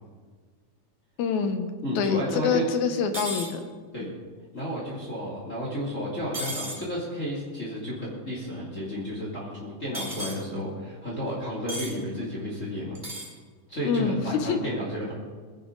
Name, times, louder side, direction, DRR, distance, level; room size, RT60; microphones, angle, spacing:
voice 1, 1.2-1.7 2.0-3.7 4.0-4.1 13.9-14.6, left 6 dB, 70° left, 7 dB, 2.2 m, -26 dB
voice 2, 1.8-2.6 3.9-4.1 4.5-13.0 13.7-15.1, equal, 25° left, -5 dB, 2.8 m, -32 dB
sound 1, 3.1-3.5 6.3-6.8 9.9-10.4 11.7-11.9 12.9-13.3, equal, 20° right, 1.7 m, -34 dB
21.5 x 11.5 x 3.9 m, 1.5 s
omnidirectional pair, 3.6 m